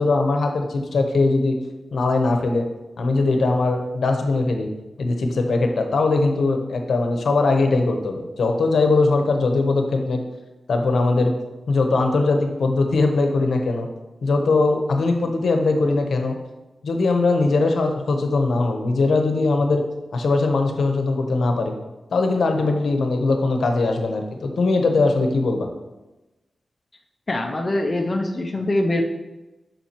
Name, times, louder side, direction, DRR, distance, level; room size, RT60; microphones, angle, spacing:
voice 1, 0.0-1.6 1.9-2.6 3.0-4.7 5.0-10.2 10.7-11.3 11.7-13.9 14.2-16.4 16.8-19.8 20.1-21.7 22.1-25.7, left 3 dB, 70° left, 4 dB, 0.8 m, -20 dB
voice 2, 27.3-29.0, left 1 dB, 25° left, 2 dB, 0.4 m, -23 dB
7.2 x 5.5 x 2.9 m, 1.1 s
wide cardioid pair, 180°, 0 cm